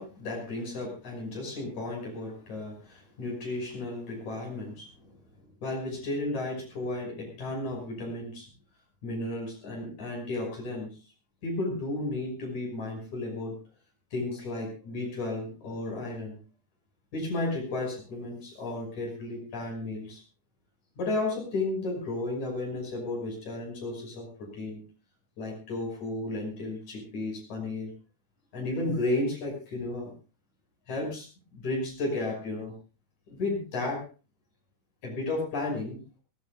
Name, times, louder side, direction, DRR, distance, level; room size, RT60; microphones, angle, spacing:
voice 1, 0.0-5.1 5.6-8.5 9.0-10.9 11.4-13.6 14.1-16.4 17.1-20.2 21.0-24.8 25.4-27.9 28.5-30.1 30.9-31.3 31.5-32.7 33.3-34.0 35.0-36.0, left 2 dB, 70° left, 0 dB, 7.4 m, -33 dB
23.0 x 17.5 x 2.5 m, 0.33 s
omnidirectional pair, 3.5 m